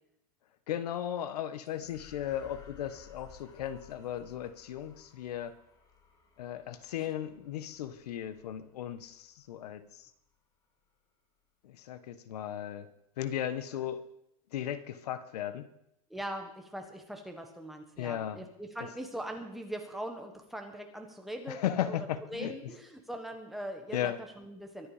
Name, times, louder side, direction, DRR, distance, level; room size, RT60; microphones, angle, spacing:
voice 1, 0.7-5.6 6.4-10.1 11.6-12.9 13.2-14.1 14.5-15.7 18.0-18.4 21.5-22.6 23.9-24.2, left 10 dB, 80° left, 13 dB, 1.4 m, -36 dB
sound 1, 1.6-10.3, left 7 dB, 20° left, 1.7 m, -58 dB
voice 2, 16.1-21.6 21.8-24.9, right 1 dB, ahead, 3 dB, 1.4 m, -41 dB
23.0 x 8.5 x 5.0 m, 0.79 s
supercardioid pair, 170°, 20 cm